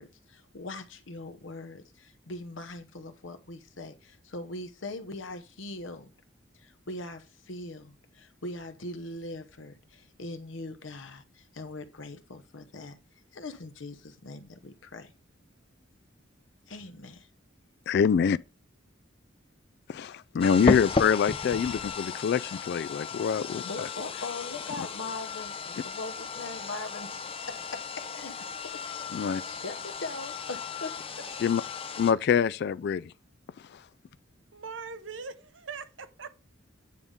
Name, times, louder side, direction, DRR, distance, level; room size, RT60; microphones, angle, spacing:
voice 1, 0.0-6.1 6.6-13.0 13.3-15.1 16.7-17.3 20.8-20.9 23.7-28.9 29.4-31.3, left 2 dB, 75° left, 1.0 m, -41 dB
voice 2, 17.9-18.4 19.9-23.9 24.8-24.9 29.1-29.4 31.4-31.6 32.0-33.1 33.7-33.8, left 7 dB, 55° left, 0.3 m, -25 dB
sound 1, 20.4-32.1, left 4 dB, 30° left, 0.6 m, -34 dB
voice 3, 34.5-36.4, right 5 dB, 70° right, 0.8 m, -41 dB
9.3 x 3.6 x 5.4 m
head